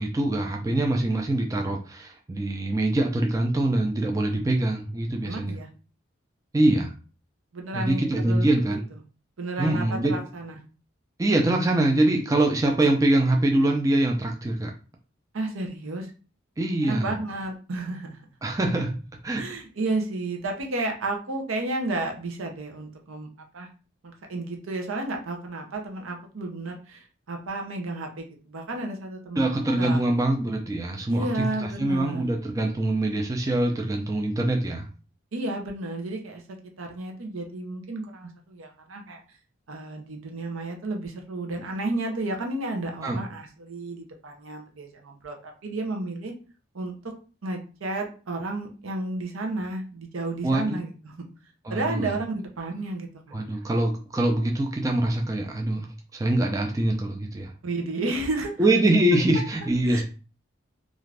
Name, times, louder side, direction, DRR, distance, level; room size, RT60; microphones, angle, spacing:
voice 1, 0.0-5.6 6.5-6.9 7.7-8.8 9.6-10.2 11.2-14.7 16.6-17.1 18.4-19.4 29.4-31.3 31.6-34.9 43.0-43.2 50.4-50.8 51.6-52.2 53.3-55.9 56.1-57.5 58.6-60.0, right 1 dB, 15° right, 2 dB, 0.3 m, -24 dB
voice 2, 5.2-5.7 7.5-8.5 9.4-10.5 15.3-16.1 16.8-18.2 19.3-23.3 23.5-23.7 24.0-30.0 31.1-32.2 35.3-39.2 39.7-46.3 46.7-46.9 47.4-51.3 51.7-53.7 57.6-58.5 59.8-60.0, right 2 dB, 90° right, 3 dB, 0.7 m, -32 dB
2.5 x 2.4 x 3.2 m, 0.36 s
head